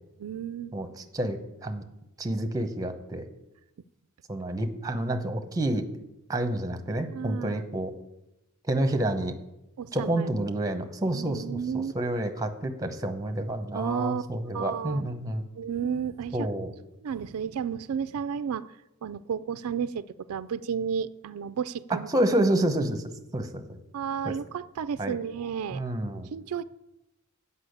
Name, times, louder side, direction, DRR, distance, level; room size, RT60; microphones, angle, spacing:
voice 1, 0.2-0.7 7.1-7.6 9.8-10.5 11.1-11.9 13.7-14.2 14.5-15.1 15.6-16.5 17.0-18.7 19.0-22.1 23.9-25.9 26.3-26.6, right 7 dB, 85° right, 15 dB, 0.4 m, -32 dB
voice 2, 0.7-1.8 2.2-3.2 4.3-5.8 6.3-7.9 8.7-9.3 9.9-15.4 16.3-16.7 21.9-23.0 23.3-23.6 24.2-24.4 25.0-25.2 25.7-26.3, right 1 dB, 15° right, 7 dB, 0.8 m, -29 dB
8.3 x 5.5 x 7.9 m, 0.91 s
head